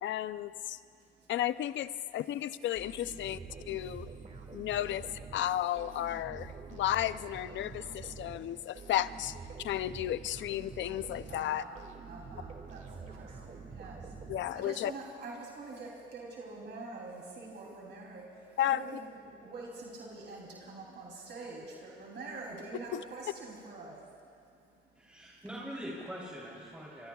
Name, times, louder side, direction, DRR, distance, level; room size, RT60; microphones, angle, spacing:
voice 1, 0.0-0.8 1.3-3.4 3.7-4.1 4.5-5.1 5.3-11.6 14.3-14.9 18.6-18.8 22.9-23.0, left 12 dB, 70° left, 14 dB, 0.5 m, -33 dB
voice 2, 0.8-1.3 4.3-4.5 8.2-8.3 11.3-25.3, right 3 dB, 60° right, -3 dB, 3.2 m, -46 dB
sound 1, 2.7-15.0, right 4 dB, 40° right, 2.2 m, -47 dB
voice 3, 24.9-27.1, equal, 5° right, -6 dB, 3.3 m, -43 dB
25.5 x 24.0 x 2.4 m, 2.5 s
cardioid pair, 90°, 20 cm